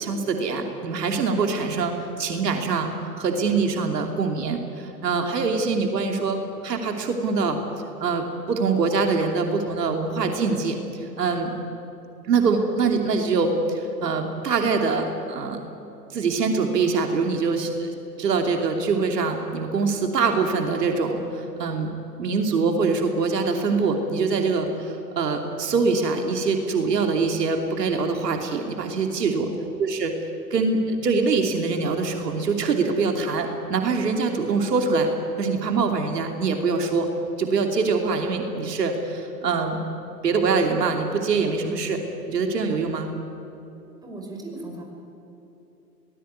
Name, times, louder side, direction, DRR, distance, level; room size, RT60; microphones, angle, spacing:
voice 1, 0.0-2.9 3.2-7.6 8.0-11.5 12.3-15.6 16.1-17.9 18.2-21.9 22.2-29.5 29.8-30.1 30.5-35.1 35.4-37.1 37.4-39.8 40.2-42.0 42.3-43.1, right 4 dB, 70° right, 3 dB, 3.0 m, -24 dB
voice 2, 29.3-29.6 44.0-44.8, right 2 dB, 10° right, 0 dB, 5.6 m, -37 dB
23.5 x 19.0 x 9.6 m, 2.9 s
hypercardioid pair, 120°, 50 cm